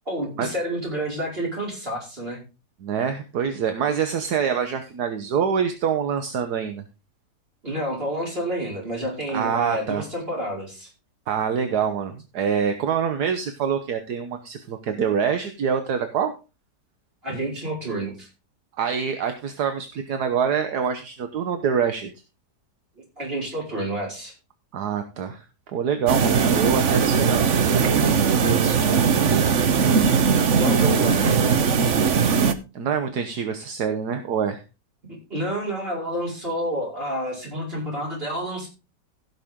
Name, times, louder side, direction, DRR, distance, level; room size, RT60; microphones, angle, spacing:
voice 1, 0.1-2.4 7.6-10.9 17.2-18.3 23.0-24.3 30.6-31.4 35.1-38.7, right 1 dB, 35° right, -3 dB, 5.3 m, -29 dB
voice 2, 2.8-6.8 9.3-10.0 11.3-16.3 18.8-22.1 24.7-25.4 25.7-28.1 28.4-29.6 30.8-30.9 32.7-34.6, right 7 dB, 70° right, 7 dB, 1.5 m, -26 dB
sound 1, 26.1-32.5, right 6 dB, 50° right, 1.1 m, -19 dB
16.0 x 6.7 x 3.7 m, 0.30 s
omnidirectional pair, 1.8 m